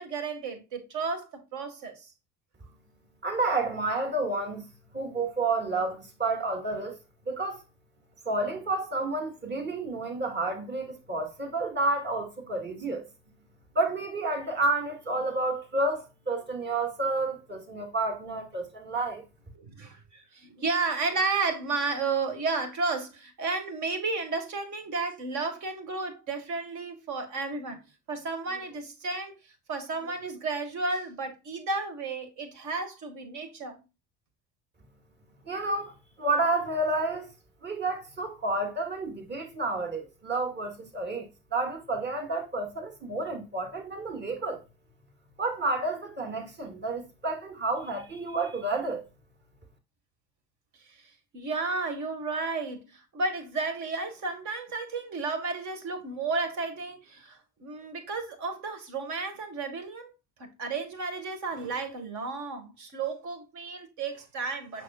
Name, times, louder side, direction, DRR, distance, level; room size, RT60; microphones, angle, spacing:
voice 1, 0.0-2.1 19.6-27.8 28.1-33.8 50.8-60.1 60.4-64.8, right 3 dB, 60° right, 1.9 m, -33 dB
voice 2, 3.2-4.6 4.9-7.0 7.3-7.6 8.3-13.0 13.7-19.2 35.5-37.3 37.6-44.6 45.4-49.0, right 2 dB, 30° right, 2.2 m, -30 dB
6.4 x 6.2 x 2.4 m
hypercardioid pair, 60°, 33 cm